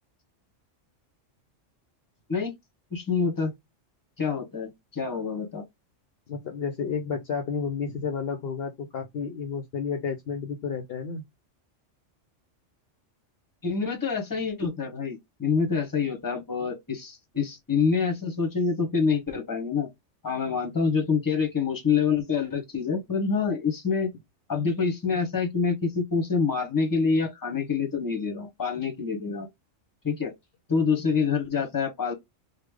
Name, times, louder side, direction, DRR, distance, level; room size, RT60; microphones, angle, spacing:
voice 1, 2.9-3.5 4.2-5.6 13.6-19.9 20.2-24.1 24.5-29.5 30.0-30.3 30.7-32.1, left 5 dB, 20° left, 0.9 m, -26 dB
voice 2, 6.3-11.2, left 6 dB, 60° left, 0.7 m, -31 dB
3.2 x 2.2 x 3.5 m
omnidirectional pair, 1.3 m